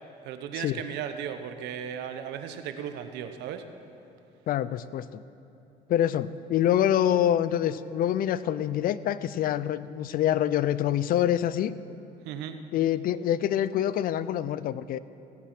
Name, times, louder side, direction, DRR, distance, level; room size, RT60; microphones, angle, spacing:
voice 1, 0.2-3.6 12.2-12.6, right 8 dB, 90° right, 8 dB, 0.9 m, -36 dB
voice 2, 4.5-5.2 5.9-11.7 12.7-15.0, left 11 dB, 60° left, 16 dB, 0.5 m, -26 dB
17.0 x 8.5 x 6.0 m, 2.9 s
cardioid pair, 110°, 17 cm